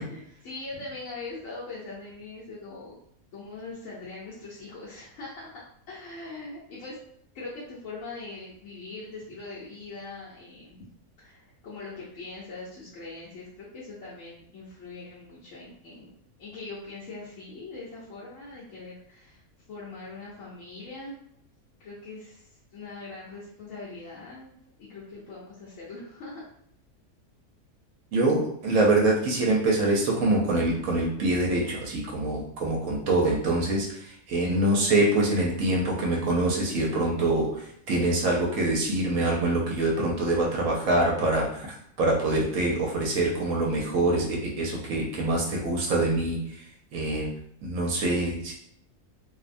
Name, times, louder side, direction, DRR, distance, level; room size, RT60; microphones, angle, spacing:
voice 1, 0.0-3.0 3.3-5.6 5.9-7.0 7.3-10.8 11.2-16.1 16.4-19.4 19.7-21.2 21.8-24.6 24.9-26.4, left 3 dB, 65° left, -8 dB, 1.0 m, -41 dB
voice 2, 28.1-47.3 47.6-48.5, right 2 dB, 70° right, -2 dB, 0.9 m, -25 dB
2.6 x 2.1 x 2.5 m, 0.68 s
omnidirectional pair, 1.5 m